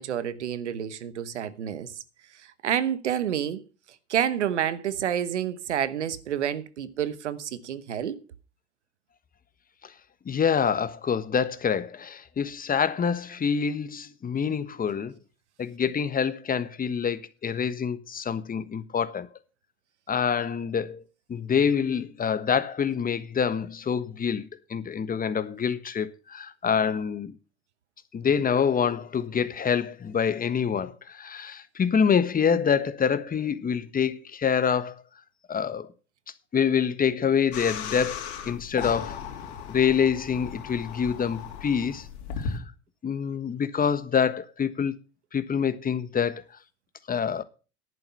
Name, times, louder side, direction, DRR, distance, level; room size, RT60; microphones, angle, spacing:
voice 1, 0.0-1.9 2.6-3.6 4.1-8.2, right 9 dB, 90° right, 1.1 m, -29 dB
voice 2, 10.2-15.1 15.6-19.3 20.1-21.0 21.3-27.3 28.1-35.0 35.5-35.9 36.5-39.2 39.7-42.1 42.4-42.6 43.0-44.9 45.3-46.4 47.1-47.4, left 7 dB, 25° left, 1.3 m, -26 dB
sound 1, 37.5-42.6, left 7 dB, 70° left, 2.9 m, -36 dB
11.0 x 9.1 x 5.6 m
hypercardioid pair, 80°, 34 cm